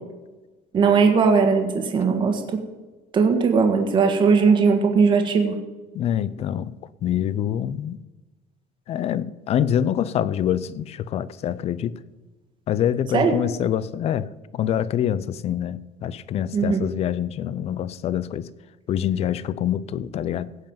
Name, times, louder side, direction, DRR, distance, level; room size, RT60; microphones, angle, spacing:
voice 1, 0.7-2.4 3.1-5.6 13.1-13.3 16.5-16.8, right 5 dB, 30° right, 4 dB, 1.5 m, -18 dB
voice 2, 5.9-6.8 7.0-8.0 8.9-11.9 12.7-14.3 14.5-18.5 18.9-20.5, left 10 dB, 40° left, 18 dB, 0.5 m, -25 dB
16.0 x 5.5 x 8.8 m, 1.2 s
cardioid pair, 165°, 16 cm